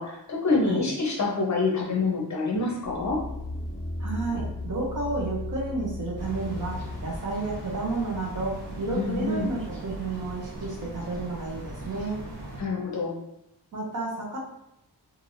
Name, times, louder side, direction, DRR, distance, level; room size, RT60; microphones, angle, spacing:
voice 1, 0.0-3.2 8.9-9.5 12.6-13.2, left 3 dB, 45° left, -2 dB, 0.7 m, -26 dB
sound 1, 2.8-7.2 7.7-7.8, left 2 dB, ahead, 0.6 m, -35 dB
voice 2, 4.0-12.2 13.7-14.4, right 3 dB, 45° right, -3 dB, 0.8 m, -31 dB
sound 2, 6.2-12.6, right 1 dB, 25° right, 1.2 m, -39 dB
3.2 x 2.6 x 2.6 m, 0.85 s
wide cardioid pair, 170°, 41 cm